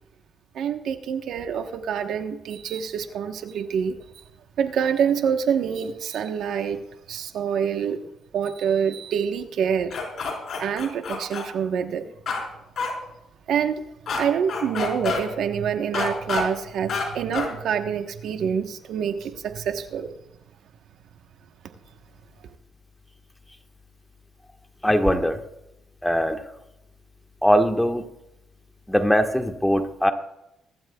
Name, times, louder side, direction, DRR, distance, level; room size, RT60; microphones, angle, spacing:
voice 1, 0.5-4.0 4.6-6.8 7.1-8.0 8.3-10.0 10.6-12.0 13.5-13.8 14.2-20.1, right 7 dB, 75° right, 7 dB, 1.1 m, -26 dB
sound 1, 9.9-11.4 12.3-12.4 12.8-12.9 14.1-14.2 14.5-15.2 15.9-16.4 16.9-17.0 17.3-17.5, left 5 dB, 55° left, 4.4 m, -27 dB
voice 2, 24.8-25.4 26.0-26.4 27.4-28.0 28.9-30.1, equal, 5° left, 5 dB, 1.4 m, -21 dB
24.5 x 12.0 x 2.3 m, 0.87 s
cardioid pair, 90°, 0 cm